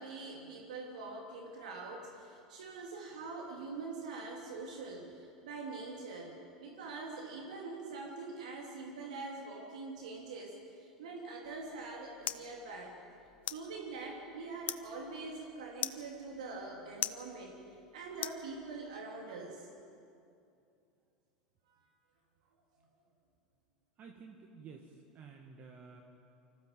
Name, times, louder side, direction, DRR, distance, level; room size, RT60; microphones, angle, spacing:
voice 1, 0.0-13.0 13.5-17.6 17.9-19.7, right 3 dB, 70° right, 0 dB, 2.9 m, -44 dB
sound 1, 11.4-19.0, left 12 dB, 40° left, 0.8 m, -44 dB
voice 2, 24.0-26.0, right 5 dB, 40° right, 2 dB, 1.9 m, -52 dB
25.0 x 15.0 x 7.6 m, 2.6 s
hypercardioid pair, 80°, 4 cm